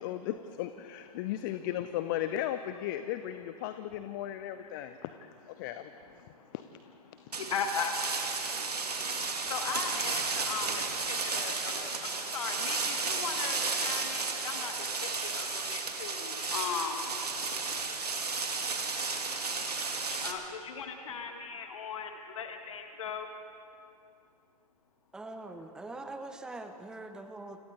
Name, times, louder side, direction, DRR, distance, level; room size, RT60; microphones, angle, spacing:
voice 1, 0.0-5.9 6.5-6.6, left 12 dB, 30° left, 11 dB, 0.7 m, -36 dB
sound 1, 7.3-20.3, right 4 dB, 70° right, 2.3 m, -33 dB
voice 2, 7.4-7.9 9.5-14.7 15.0-17.1 20.1-23.3, left 6 dB, 50° left, 5 dB, 1.8 m, -38 dB
voice 3, 25.1-27.6, right 2 dB, 5° right, 7 dB, 0.9 m, -43 dB
29.5 x 26.5 x 4.1 m, 2.5 s
figure-of-eight pair, 115°, 21 cm